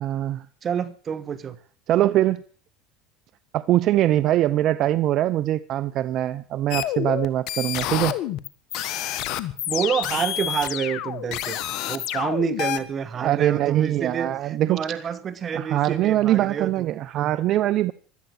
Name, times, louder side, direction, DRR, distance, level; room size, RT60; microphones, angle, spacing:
voice 1, 0.0-0.5 1.9-2.4 3.5-8.1 13.2-15.0 15.5-17.9, right 13 dB, 55° right, 0.6 m, -22 dB
voice 2, 0.6-1.6 8.7-9.0 9.7-11.6 11.9-16.9, right 7 dB, 40° right, 1.4 m, -28 dB
sound 1, 6.7-12.8, left 12 dB, 60° left, 1.4 m, -28 dB
17.0 x 12.5 x 6.4 m
hypercardioid pair, 85°, 0 cm